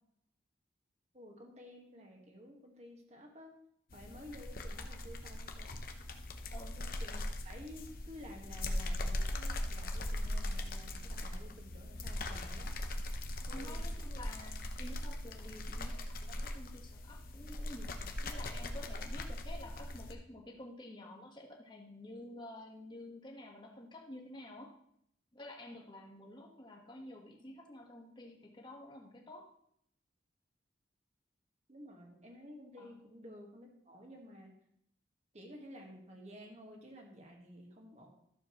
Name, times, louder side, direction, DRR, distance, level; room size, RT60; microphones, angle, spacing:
voice 1, 1.1-3.5 3.9-5.7 6.8-12.7 13.5-13.9 31.7-34.5 35.3-38.1, equal, 35° right, 1 dB, 1.7 m, -52 dB
sound 1, 3.9-20.2, left 1 dB, 50° left, 0.8 m, -40 dB
voice 2, 6.5-6.8 13.5-24.7 25.3-29.5 32.8-33.0, left 1 dB, 25° left, 1 dB, 1.4 m, -50 dB
13.0 x 7.0 x 3.1 m, 0.72 s
head